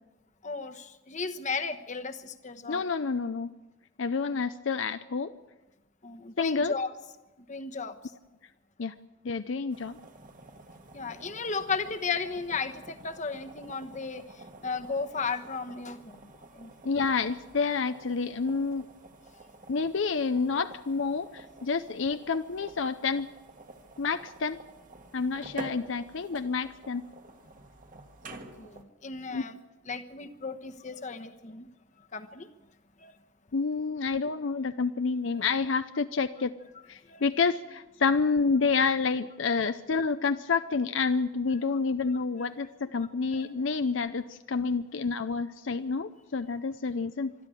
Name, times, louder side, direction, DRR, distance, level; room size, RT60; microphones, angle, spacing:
voice 1, 0.4-2.8 6.0-6.9 7.5-8.0 10.9-14.2 14.6-16.2 16.5-16.7 28.3-29.6 29.9-31.7 32.1-32.5 33.0-33.1 37.1-37.2 43.3-43.5, left 4 dB, 35° left, 7 dB, 1.1 m, -35 dB
voice 2, 2.7-3.5 4.0-5.3 6.4-6.7 8.8-8.9 9.2-10.0 16.9-18.9 19.7-23.3 24.0-24.6 25.1-27.1 29.3-29.4 33.5-36.5 36.9-47.3, left 4 dB, 65° left, 10 dB, 0.6 m, -29 dB
sound 1, 9.7-28.8, right 2 dB, 40° right, 1.7 m, -49 dB
25.5 x 11.5 x 9.0 m, 1.1 s
head